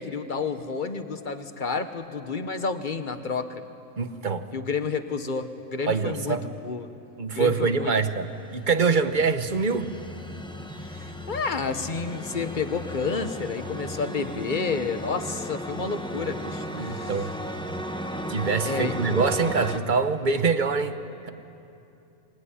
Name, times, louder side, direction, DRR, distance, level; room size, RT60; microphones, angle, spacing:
voice 1, 0.0-3.6 4.5-6.9 7.3-7.9 10.9-17.1 18.6-19.0, left 4 dB, 35° left, 9 dB, 1.3 m, -30 dB
voice 2, 4.0-4.5 5.9-6.4 7.2-9.9 16.8-17.3 18.3-21.0, right 5 dB, 35° right, 10 dB, 1.1 m, -24 dB
sound 1, 8.2-19.8, equal, 5° left, 1.3 m, -35 dB
24.0 x 21.5 x 9.9 m, 2.7 s
omnidirectional pair, 1.4 m